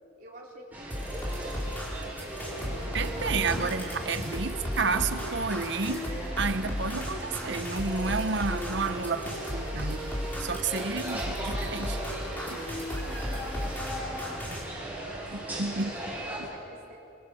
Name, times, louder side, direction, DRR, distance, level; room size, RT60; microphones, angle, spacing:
voice 1, 0.2-3.8 4.1-4.6 9.1-9.9 10.7-11.6 12.8-17.0, right 1 dB, 45° right, -2 dB, 3.6 m, -49 dB
sound 1, 0.7-16.4, right 1 dB, 10° right, 7.4 m, -39 dB
sound 2, 0.9-14.6, equal, 10° left, 4.4 m, -35 dB
Thunder, 2.6-9.0 9.3-9.9 10.4-11.2, left 1 dB, 35° left, 1.3 m, -44 dB
voice 2, 2.9-6.1 6.4-12.0 12.5-12.6 15.3-15.9 16.4-16.5, right 4 dB, 65° right, 10 dB, 1.0 m, -31 dB
24.5 x 23.0 x 6.5 m, 2.6 s
head